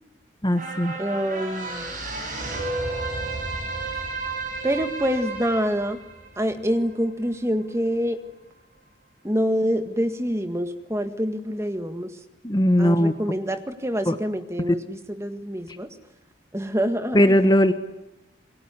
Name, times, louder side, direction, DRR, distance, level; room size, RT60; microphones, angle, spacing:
voice 1, 0.4-0.9 12.4-13.1 14.1-14.2 14.7-14.8 17.1-17.7, equal, 20° left, 9 dB, 1.2 m, -18 dB
sound 1, 0.5-7.2 7.6-7.7, right 3 dB, 45° right, 7.6 m, -32 dB
voice 2, 1.0-1.9 4.6-6.0 6.4-8.2 9.2-12.2 12.8-15.9 16.5-17.4, equal, 15° right, 8 dB, 1.8 m, -26 dB
27.5 x 21.5 x 9.8 m, 0.92 s
head